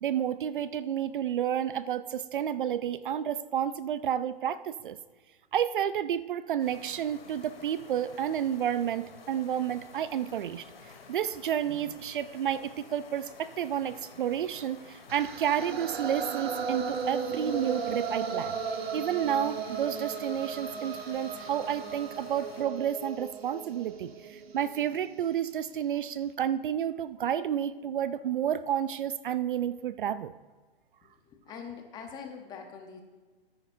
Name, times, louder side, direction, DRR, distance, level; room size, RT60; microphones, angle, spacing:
voice 1, 0.0-5.0 5.5-10.7 11.1-18.6 18.9-30.3, right 9 dB, 55° right, 15 dB, 0.4 m, -30 dB
sound 1, 6.6-22.6, left 4 dB, 70° left, 2.1 m, -51 dB
sound 2, 15.1-25.2, right 5 dB, 80° right, 1.2 m, -36 dB
voice 2, 31.3-33.0, left 6 dB, 15° left, 4 dB, 0.8 m, -43 dB
13.5 x 10.0 x 2.6 m, 1.3 s
hypercardioid pair, 145°, 30 cm